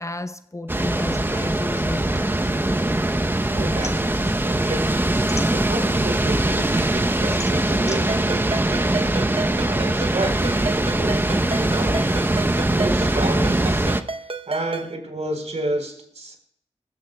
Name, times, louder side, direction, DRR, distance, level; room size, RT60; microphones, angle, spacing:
voice 1, 0.0-2.1, left 2 dB, 25° left, 0.7 m, -32 dB
sound 1, 0.7-14.0, right 1 dB, 15° right, 0.8 m, -22 dB
sound 2, 2.4-3.3 3.6-6.1 6.6-9.7, left 3 dB, 65° left, 1.3 m, -40 dB
voice 2, 3.5-8.9 9.7-12.0 12.7-13.9 14.5-16.4, right 1 dB, 70° right, 4.1 m, -30 dB
Ringtone, 8.1-14.9, right 3 dB, 50° right, 0.8 m, -32 dB
21.5 x 15.0 x 2.3 m
cardioid pair, 55°, 12 cm